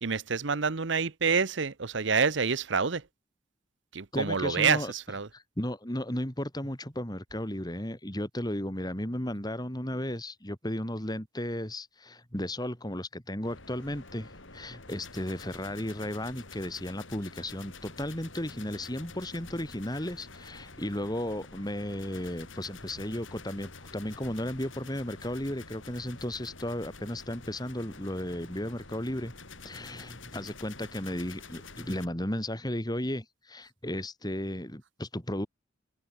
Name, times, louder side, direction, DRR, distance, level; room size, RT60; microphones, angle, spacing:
voice 1, 0.0-3.0 3.9-5.3, right 5 dB, 65° right, 0.9 m, -27 dB
voice 2, 4.1-4.9 5.3-29.3 29.6-35.5, left 1 dB, 20° left, 4.1 m, -34 dB
sound 1, 13.4-32.1, left 3 dB, 75° left, 6.5 m, -48 dB
open air
head